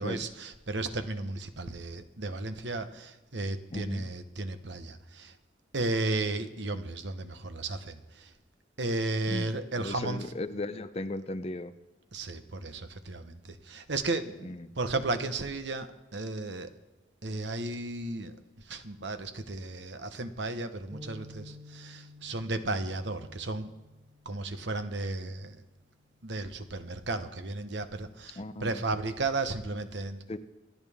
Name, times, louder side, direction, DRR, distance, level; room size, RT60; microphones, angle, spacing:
voice 1, 0.0-5.3 5.7-8.3 8.8-10.2 12.1-16.7 17.2-18.4 18.7-23.7 24.2-25.6 26.2-30.4, right 2 dB, 75° right, 9 dB, 1.1 m, -34 dB
voice 2, 3.7-4.1 9.3-9.5 9.8-11.7 14.4-14.7 28.4-28.8 30.3-30.4, left 2 dB, 35° left, 11 dB, 0.6 m, -36 dB
sound 1, 20.9-25.2 25.7-25.9 26.7-27.2, left 1 dB, 20° right, 2.4 m, -51 dB
27.5 x 10.5 x 3.6 m, 1.1 s
head